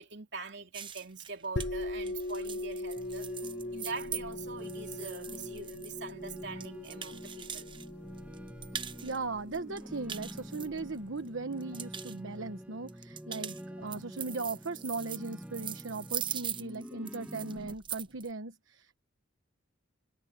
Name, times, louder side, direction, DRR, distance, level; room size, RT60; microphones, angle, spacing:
voice 1, 0.0-3.3 3.7-7.7, right 4 dB, 60° right, 3.3 m, -43 dB
sound 1, 0.7-7.9 8.2-9.2 9.5-11.2 11.5-12.2 12.9-18.3, right 9 dB, 25° right, 0.7 m, -41 dB
sound 2, 1.6-10.9, left 2 dB, 60° left, 1.0 m, -40 dB
sound 3, 3.0-17.7, equal, 5° right, 1.7 m, -47 dB
voice 2, 9.0-19.0, right 3 dB, 75° right, 1.1 m, -38 dB
head